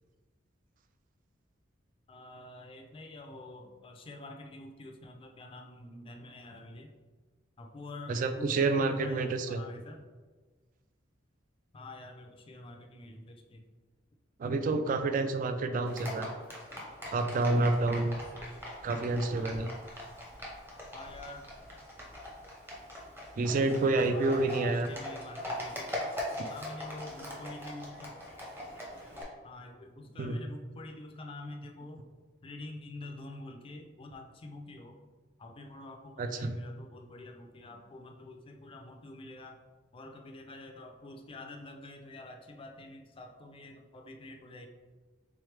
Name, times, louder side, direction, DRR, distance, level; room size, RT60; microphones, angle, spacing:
voice 1, 2.1-6.9 7.6-10.0 11.7-13.6 20.9-21.5 24.1-26.1 26.5-28.2 29.4-32.1 32.4-35.0 35.4-39.6 39.9-44.7, left 2 dB, 30° left, 4 dB, 0.4 m, -47 dB
voice 2, 8.1-9.6 14.4-16.3 17.1-18.2 18.8-19.7 23.4-24.9 30.2-30.4 36.2-36.6, right 3 dB, 45° right, 8 dB, 0.3 m, -28 dB
Livestock farm animals working animals, 15.9-29.2, left 1 dB, 10° right, 0.8 m, -42 dB
3.5 x 3.2 x 3.2 m, 1.4 s
head